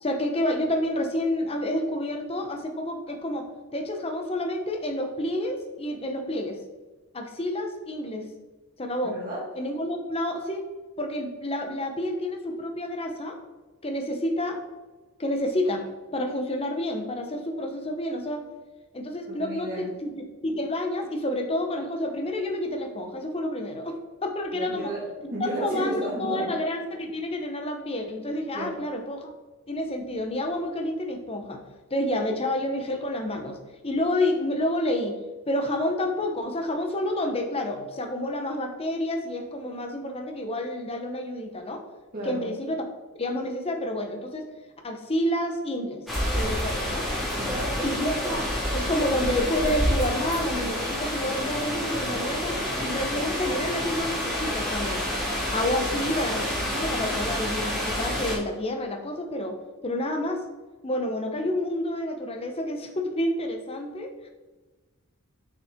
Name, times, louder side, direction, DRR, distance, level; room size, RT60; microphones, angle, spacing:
voice 1, 0.0-6.6 7.1-8.2 8.8-9.2 9.6-10.6 11.0-13.4 13.8-14.6 15.2-15.8 16.1-18.4 18.9-24.9 25.4-29.3 29.7-31.6 31.9-33.6 33.8-35.1 35.5-41.8 42.2-42.8 43.2-44.5 44.8-46.0 46.4-47.1 47.8-55.1 55.5-56.4 56.7-59.6 59.8-60.4 60.8-64.3, left 1 dB, 25° left, 4 dB, 0.9 m, -29 dB
voice 2, 9.0-9.5 19.3-19.9 24.5-26.5 28.5-28.8 42.1-42.5 47.4-47.7 55.8-56.4, right 1 dB, 40° right, -8 dB, 2.0 m, -33 dB
sound 1, 46.1-58.4, equal, ahead, 2.0 m, -28 dB
6.6 x 5.6 x 3.7 m, 1.2 s
head